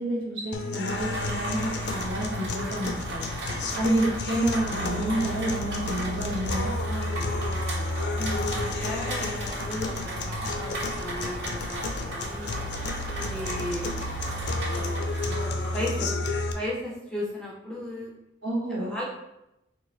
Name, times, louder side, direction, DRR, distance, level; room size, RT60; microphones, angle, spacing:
voice 1, 0.0-3.3 3.7-6.7 18.4-19.0, right 1 dB, 80° right, -3 dB, 1.0 m, -29 dB
sound 1, 0.5-16.5, left 2 dB, 60° left, 0.4 m, -32 dB
Rain, 0.9-15.9, right 1 dB, 60° right, 0.7 m, -35 dB
voice 2, 6.9-7.4 8.2-12.6 13.1-14.0 14.6-15.3 15.7-16.1 16.5-18.1 18.8-19.0, left 1 dB, 5° left, -5 dB, 0.5 m, -36 dB
3.8 x 2.4 x 3.1 m, 0.88 s
head